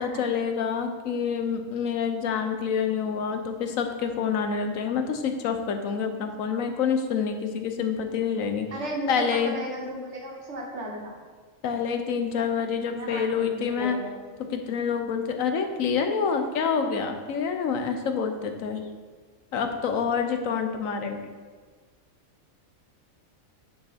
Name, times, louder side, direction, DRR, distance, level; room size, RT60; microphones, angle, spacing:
voice 1, 0.0-8.7 9.1-9.5 11.6-14.0 14.5-18.8 19.5-21.3, left 6 dB, 85° left, 6 dB, 1.2 m, -27 dB
voice 2, 8.7-11.2 12.9-14.1, equal, 60° right, -1 dB, 1.7 m, -35 dB
9.8 x 4.9 x 4.2 m, 1.5 s
omnidirectional pair, 1.4 m